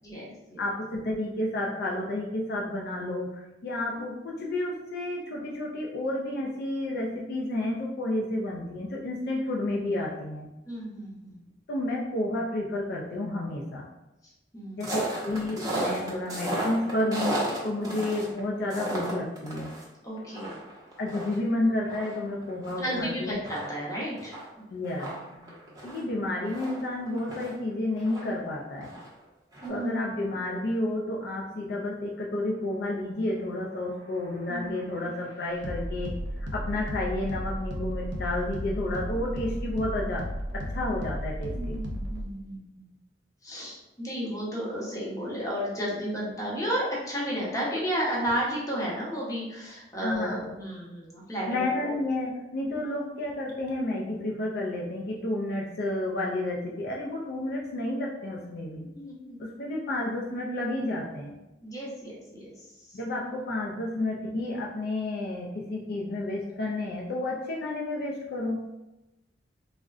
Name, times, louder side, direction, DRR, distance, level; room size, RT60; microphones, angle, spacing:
voice 1, 0.0-0.6 4.0-4.1 10.7-11.5 14.5-15.0 17.8-17.9 20.0-20.6 22.8-24.4 25.4-25.6 29.6-29.9 34.5-34.7 41.5-42.9 43.4-52.0 58.9-59.4 61.6-63.0, equal, 20° left, -6 dB, 0.8 m, -33 dB
voice 2, 0.6-10.5 11.7-13.8 14.8-17.4 17.6-19.7 21.0-23.4 24.7-25.1 25.8-28.9 29.7-40.3 40.5-41.8 50.0-50.4 51.5-58.9 59.4-61.4 62.9-68.6, left 1 dB, 60° left, -2 dB, 0.4 m, -31 dB
sound 1, 14.8-19.8 20.2-22.9 23.2-23.3 23.4-27.5 28.0-29.2 29.5-29.7, right 1 dB, 20° right, 0.7 m, -34 dB
sound 2, 33.6-42.3, equal, 80° right, 0.6 m, -35 dB
3.6 x 2.1 x 2.4 m, 0.97 s
head